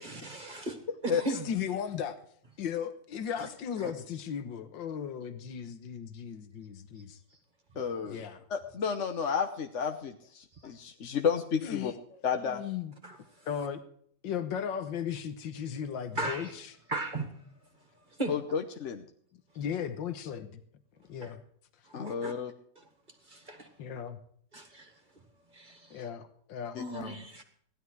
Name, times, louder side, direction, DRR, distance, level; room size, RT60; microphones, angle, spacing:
voice 1, 0.0-1.5 3.4-3.5 3.8-3.9 13.0-13.2 16.2-16.5 16.9-17.3 18.2-18.3 21.2-21.3 21.9-22.3 22.8-22.9 23.3-23.7 24.5-24.9 25.5-26.0 26.8-27.4, right 2 dB, 25° right, 5 dB, 2.0 m, -37 dB
voice 2, 1.3-2.2 2.6-7.2 8.0-8.4 11.6-12.9 13.5-13.8 14.2-16.7 19.6-20.6 21.1-21.4 23.8-24.2 25.9-27.2, left 8 dB, 85° left, 9 dB, 1.9 m, -36 dB
voice 3, 7.8-8.2 8.5-11.9 12.2-12.6 18.3-19.0 21.9-22.5 26.7-26.8, left 6 dB, 50° left, 6 dB, 1.1 m, -31 dB
16.5 x 12.0 x 4.7 m, 0.62 s
omnidirectional pair, 2.0 m